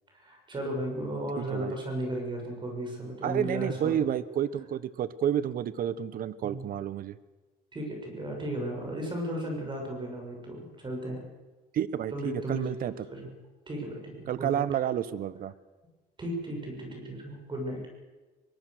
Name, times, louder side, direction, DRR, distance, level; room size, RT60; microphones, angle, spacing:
voice 1, 0.1-4.0 6.4-6.6 7.7-11.2 12.1-13.3 13.7-14.6 16.2-17.9, right 1 dB, 30° right, 1 dB, 6.8 m, -35 dB
voice 2, 1.4-1.8 3.2-7.2 11.7-13.0 14.3-15.5, right 10 dB, 60° right, 17 dB, 1.1 m, -30 dB
23.5 x 19.5 x 6.7 m, 1.2 s
cardioid pair, 110°, 17 cm